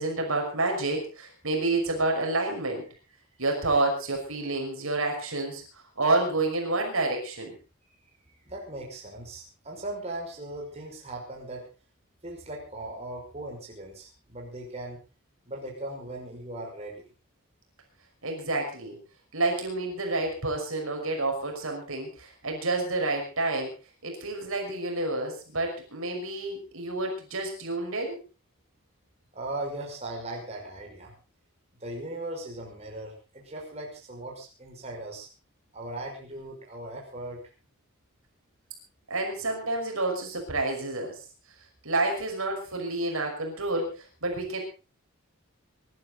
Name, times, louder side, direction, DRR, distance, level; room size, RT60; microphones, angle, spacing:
voice 1, 0.0-2.9 3.4-7.6 18.2-19.0 19.3-23.7 24.0-28.2 39.1-41.2 41.8-44.6, right 2 dB, 70° right, 2 dB, 5.8 m, -29 dB
voice 2, 8.5-11.6 12.2-15.0 15.5-17.0 29.3-31.1 31.8-35.3 35.7-37.4, right 1 dB, 30° right, -1 dB, 5.6 m, -38 dB
24.0 x 12.5 x 4.0 m, 0.33 s
head